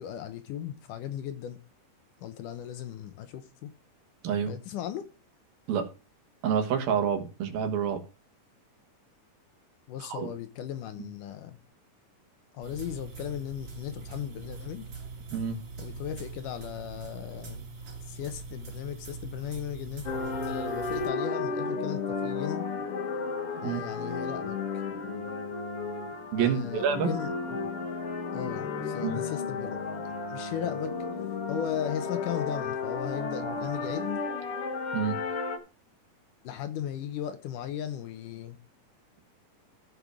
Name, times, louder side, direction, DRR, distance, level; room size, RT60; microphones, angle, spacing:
voice 1, 0.0-1.6 2.2-3.7 4.5-5.0 9.9-11.6 12.5-14.9 15.8-17.7 18.1-20.0 20.5-22.7 23.6-24.6 26.4-27.7 28.3-29.7 30.3-30.9 31.5-34.3 36.4-38.6, left 10 dB, 70° left, 2.3 m, -37 dB
voice 2, 6.4-8.0 10.0-10.3 15.3-15.6 23.6-23.8 26.3-27.1 29.0-29.2 34.9-35.2, right 7 dB, 85° right, 3.4 m, -28 dB
sound 1, 12.6-21.1, right 4 dB, 40° right, 3.7 m, -42 dB
sound 2, 20.1-35.6, left 4 dB, 50° left, 1.9 m, -33 dB
14.5 x 5.5 x 4.9 m
omnidirectional pair, 4.1 m